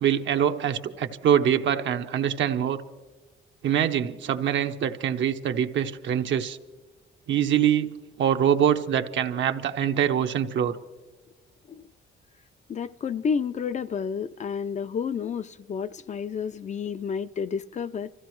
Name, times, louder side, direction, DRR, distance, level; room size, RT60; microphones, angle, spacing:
voice 1, 0.0-2.8 3.6-6.6 7.3-7.9 8.2-10.8, right 9 dB, 70° right, 0.8 m, -24 dB
voice 2, 12.7-18.1, left 6 dB, 35° left, 0.4 m, -30 dB
25.5 x 15.0 x 3.1 m
cardioid pair, 90°, 20 cm